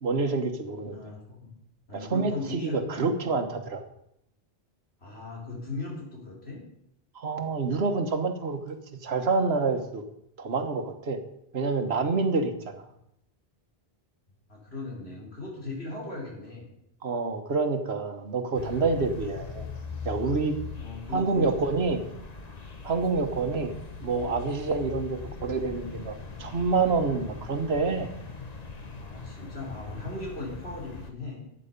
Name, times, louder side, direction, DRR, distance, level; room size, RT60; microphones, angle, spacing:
voice 1, 0.0-1.0 1.9-3.8 7.1-8.8 9.0-10.0 10.4-11.2 11.5-12.8 17.0-19.7 20.0-20.6 21.1-22.0 22.8-23.7 24.0-28.1, right 4 dB, 85° right, 7 dB, 1.5 m, -27 dB
voice 2, 0.9-1.5 1.9-3.0 5.0-6.6 14.5-16.7 20.8-21.4 29.0-31.4, left 3 dB, 90° left, -3 dB, 4.4 m, -38 dB
sound 1, 18.5-31.1, left 4 dB, 40° left, 1.2 m, -40 dB
13.0 x 8.3 x 5.3 m, 0.78 s
omnidirectional pair, 1.0 m